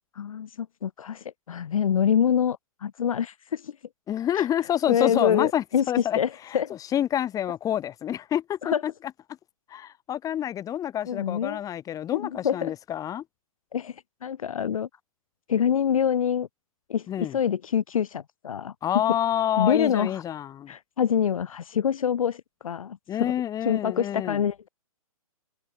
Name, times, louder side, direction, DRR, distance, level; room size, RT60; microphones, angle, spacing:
voice 1, 0.1-3.8 4.3-4.5 4.9-6.7 8.6-8.8 11.1-11.6 12.1-12.7 13.7-14.9 15.5-16.5 16.9-18.7 19.6-20.2 20.7-23.3 23.6-24.7, left 8 dB, 65° left, 1.2 m, -26 dB
voice 2, 4.1-6.2 6.5-6.6 6.9-8.9 9.7-13.2 17.1-17.4 18.8-20.7 23.1-24.4, left 11 dB, 20° left, 4.6 m, -28 dB
hypercardioid pair, 130°, 19 cm